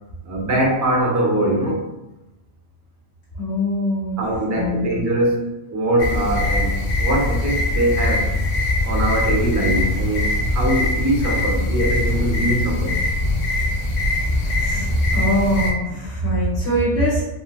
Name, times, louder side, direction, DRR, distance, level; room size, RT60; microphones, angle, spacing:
voice 1, 0.2-1.8 4.2-8.3 8.8-13.0, right 1 dB, 25° right, -3 dB, 0.4 m, -22 dB
voice 2, 3.4-4.2 4.5-4.9 14.5-17.2, equal, 70° left, -8 dB, 1.2 m, -22 dB
City-night-crickets, 6.0-15.7, left 1 dB, 45° left, 0.6 m, -22 dB
3.0 x 3.0 x 2.2 m, 0.98 s
omnidirectional pair, 1.2 m